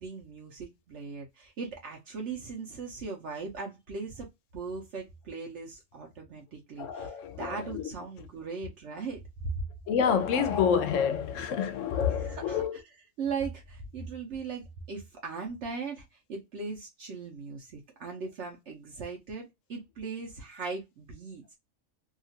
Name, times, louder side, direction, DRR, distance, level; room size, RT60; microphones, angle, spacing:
voice 1, 0.0-9.5 12.1-12.8 13.2-21.5, right 4 dB, 70° right, 1.0 m, -39 dB
voice 2, 6.8-7.8 9.9-12.8, left 7 dB, 90° left, 1.0 m, -28 dB
2.9 x 2.4 x 2.7 m
omnidirectional pair, 1.3 m